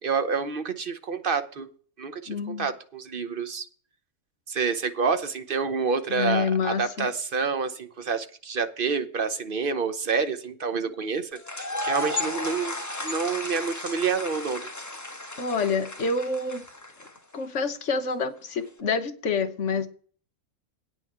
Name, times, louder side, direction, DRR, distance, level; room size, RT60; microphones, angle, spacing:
voice 1, 0.0-1.7 2.0-3.7 4.5-14.7, right 5 dB, 45° right, 0.9 m, -28 dB
voice 2, 2.3-2.7 6.1-7.1 15.4-16.6 17.3-19.9, left 4 dB, 55° left, 1.3 m, -27 dB
sound 1, 11.4-17.3, left 1 dB, 10° left, 1.1 m, -34 dB
9.1 x 6.1 x 7.4 m
omnidirectional pair, 1.6 m